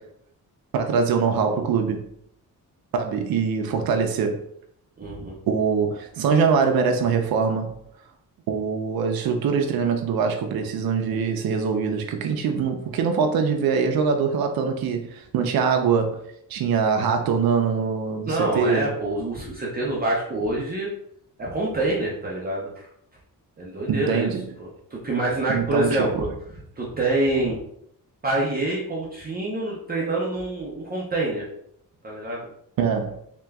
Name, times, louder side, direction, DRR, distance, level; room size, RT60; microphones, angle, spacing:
voice 1, 0.7-2.1 2.9-4.5 5.5-7.7 8.5-16.2 16.5-18.9 23.9-24.4 25.5-26.1 32.8-33.2, right 5 dB, 85° right, 0.5 m, -23 dB
voice 2, 5.0-5.4 18.2-20.9 21.4-22.9 23.6-24.3 24.6-26.3 26.8-27.6 28.2-31.5 32.0-32.5, right 2 dB, 25° right, 0.6 m, -26 dB
3.3 x 2.9 x 3.4 m
wide cardioid pair, 155°, 35 cm